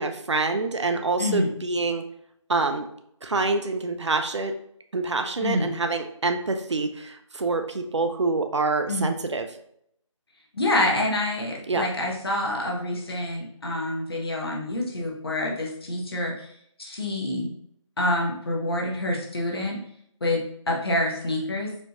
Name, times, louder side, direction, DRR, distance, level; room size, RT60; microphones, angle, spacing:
voice 1, 0.0-2.0 2.5-2.9 3.2-4.5 4.9-9.5 11.7-11.9, right 3 dB, 60° right, 7 dB, 0.5 m, -26 dB
voice 2, 1.2-1.5 5.4-5.7 8.9-9.1 10.5-16.5 16.8-17.5 18.0-19.8 20.2-21.7, left 1 dB, 50° left, -1 dB, 1.0 m, -27 dB
4.2 x 2.5 x 2.8 m, 0.69 s
figure-of-eight pair, 160°, 17 cm